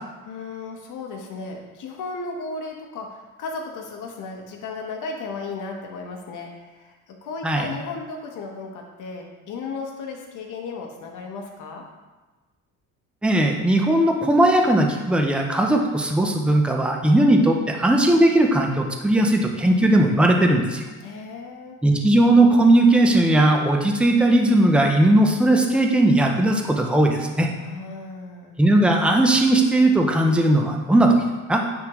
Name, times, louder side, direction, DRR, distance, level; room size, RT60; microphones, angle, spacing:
voice 1, 0.2-11.8 21.0-21.8 27.6-28.5, left 4 dB, 70° left, 1 dB, 1.1 m, -35 dB
voice 2, 13.2-20.8 21.8-27.5 28.6-31.2 31.5-31.6, right 1 dB, 5° right, 2 dB, 0.5 m, -18 dB
9.4 x 3.6 x 3.0 m, 1.2 s
cardioid pair, 125°, 32 cm